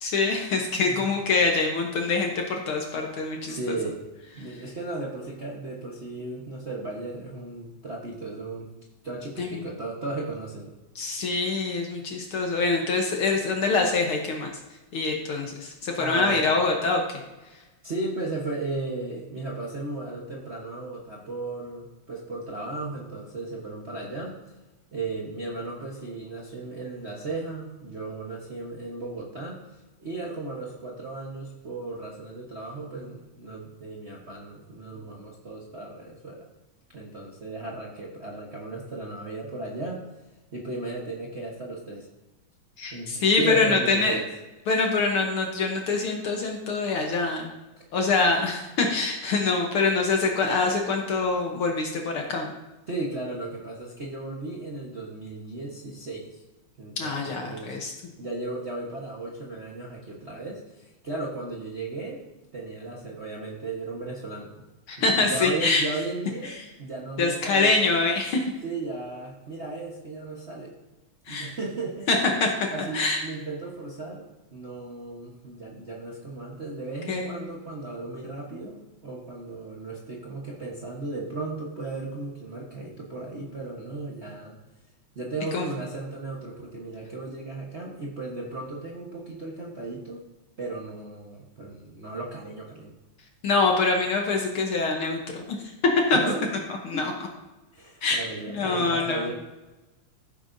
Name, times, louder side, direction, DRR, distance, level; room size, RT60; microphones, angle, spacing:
voice 1, 0.0-3.8 9.4-9.7 10.9-14.5 14.9-17.0 42.8-44.2 44.7-47.5 47.9-52.5 57.0-57.9 64.9-65.8 67.2-68.4 71.3-71.5 72.1-72.5 72.9-73.2 77.1-77.5 85.5-85.7 93.4-95.6 96.1-96.2 96.8-97.1 98.0-98.2 98.5-99.3, left 3 dB, 60° left, 1 dB, 1.5 m, -25 dB
voice 2, 3.4-4.0 4.3-8.7 9.0-10.7 16.0-16.5 17.8-24.4 24.9-36.4 36.9-40.1 40.5-42.1 42.9-44.2 52.9-56.4 56.8-57.8 58.2-62.2 62.5-64.6 65.0-67.7 68.6-70.7 71.3-72.1 72.7-74.2 74.5-84.6 85.1-90.2 90.6-92.9 96.1-96.4 96.9-97.1 97.7-99.4, right 2 dB, 80° right, -4 dB, 0.6 m, -35 dB
15.0 x 8.2 x 2.7 m, 1.1 s
omnidirectional pair, 3.3 m